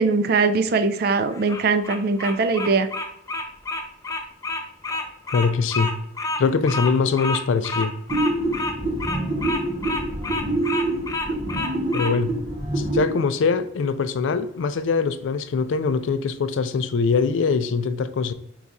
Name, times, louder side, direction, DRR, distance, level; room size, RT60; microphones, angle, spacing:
voice 1, 0.0-2.9, right 4 dB, 55° right, 0.4 m, -21 dB
Bird vocalization bird call bird song, 1.3-12.1, left 2 dB, 20° left, 0.4 m, -29 dB
voice 2, 5.3-5.9 6.4-7.9 11.9-12.3 12.8-18.3, left 5 dB, 80° left, 0.4 m, -22 dB
sound 1, 8.1-13.1, right 1 dB, 25° right, 0.9 m, -26 dB
4.7 x 2.3 x 4.0 m
head